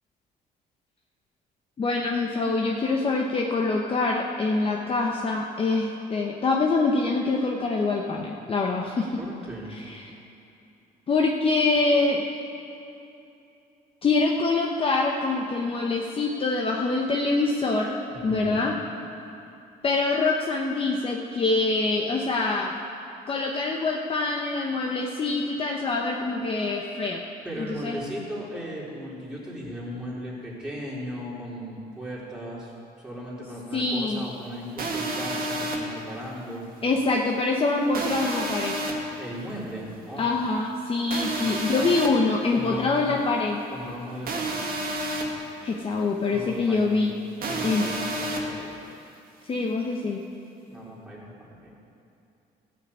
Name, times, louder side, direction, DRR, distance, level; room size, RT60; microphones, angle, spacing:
voice 1, 1.8-9.1 9.7-10.1 11.1-12.2 14.0-18.0 18.2-18.7 19.8-22.7 23.3-27.2 27.6-28.0 33.7-34.2 36.8-38.8 40.2-43.6 45.6-47.1 47.6-47.8 49.4-50.2, left 3 dB, 35° left, 0 dB, 0.9 m, -25 dB
voice 2, 9.2-9.7 18.1-18.7 27.4-32.7 33.0-36.7 39.1-40.4 41.4-41.9 42.5-43.1 43.7-45.1 46.3-47.0 47.4-48.8 50.7-51.8, equal, 5° right, -6 dB, 3.4 m, -37 dB
sound 1, 34.8-35.8 37.9-38.9 41.1-42.1 44.3-45.2 47.4-48.4, right 2 dB, 60° right, 1.8 m, -29 dB
13.5 x 6.1 x 8.3 m, 2.8 s
cardioid pair, 110°, 17 cm